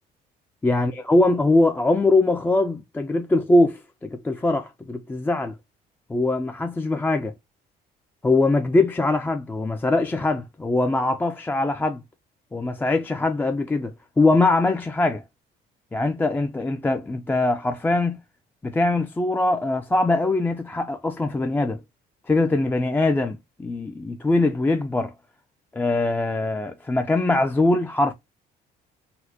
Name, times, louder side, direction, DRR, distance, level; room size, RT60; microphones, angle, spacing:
voice 1, 0.6-5.5 6.1-7.3 8.2-12.0 12.5-15.2 15.9-18.2 18.6-21.8 22.3-25.1 25.7-28.1, left 2 dB, 10° left, 0.3 m, -22 dB
4.1 x 2.1 x 2.6 m
cardioid pair, 110°, 17 cm